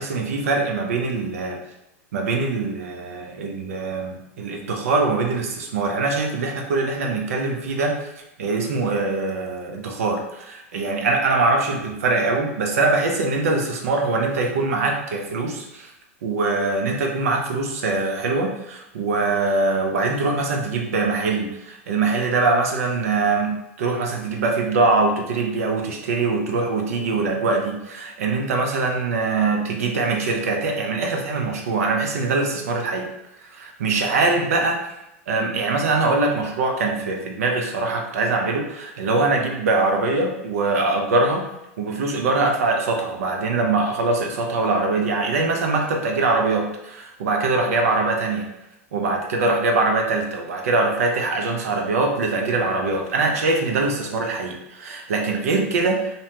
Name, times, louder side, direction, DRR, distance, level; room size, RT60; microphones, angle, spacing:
voice 1, 0.0-1.6 2.1-8.0 8.4-15.9 16.2-33.1 33.4-34.8 35.3-41.5 41.8-48.5 48.9-56.2, right 3 dB, 75° right, 2 dB, 0.5 m, -23 dB
2.7 x 2.1 x 2.8 m, 0.89 s
hypercardioid pair, 100°, 8 cm